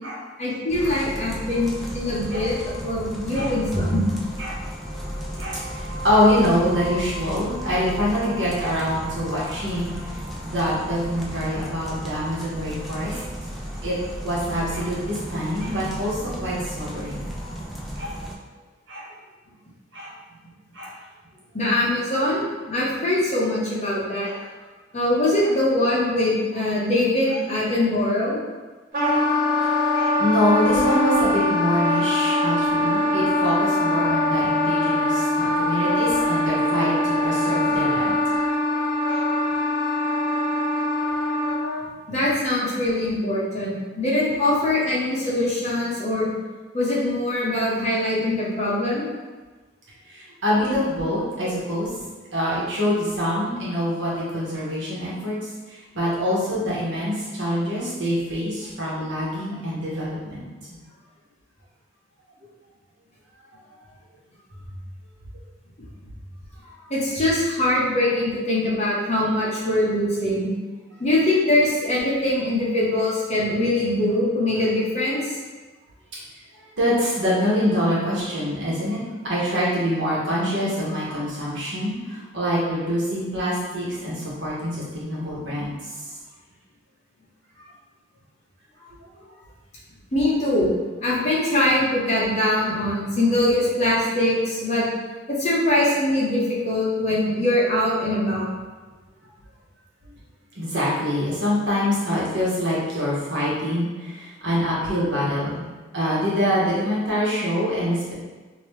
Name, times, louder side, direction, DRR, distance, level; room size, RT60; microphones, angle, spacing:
voice 1, 0.4-4.0 21.5-24.3 24.9-28.4 42.1-46.3 46.7-49.0 66.9-70.5 71.0-75.2 90.1-90.7 91.0-94.8 95.3-98.5, left 1 dB, 35° left, -6 dB, 1.0 m, -22 dB
sound 1, 0.7-18.3, equal, ahead, 0.5 m, -34 dB
voice 2, 3.3-3.9 4.4-4.6 4.9-5.0 5.4-9.9 10.4-13.2 13.8-14.0 14.2-17.2 18.0-18.1 18.9-19.0 19.9-20.1 20.7-20.9 22.1-22.2 24.2-24.4 27.3-27.4 29.0-29.1 29.9-38.2 39.1-39.2 41.1-41.2 50.1-51.9 52.3-55.4 55.7-60.4 60.7-60.8 66.6-66.7 76.5-85.9 87.6-87.7 88.8-88.9 100.5-105.6 105.9-108.1, equal, 70° right, -7 dB, 1.3 m, -25 dB
Wind instrument woodwind instrument, 28.9-41.8, left 1 dB, 50° right, 0.8 m, -22 dB
3.0 x 2.9 x 3.2 m, 1.3 s
head